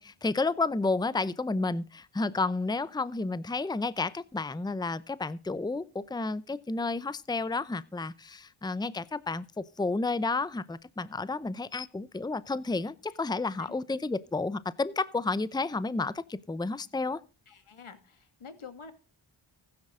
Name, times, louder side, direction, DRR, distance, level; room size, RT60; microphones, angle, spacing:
voice 1, 0.0-17.2, left 3 dB, 10° left, 0.7 m, -31 dB
voice 2, 17.5-18.9, left 5 dB, 75° left, 2.2 m, -48 dB
15.5 x 9.7 x 3.8 m
cardioid pair, 60°, 49 cm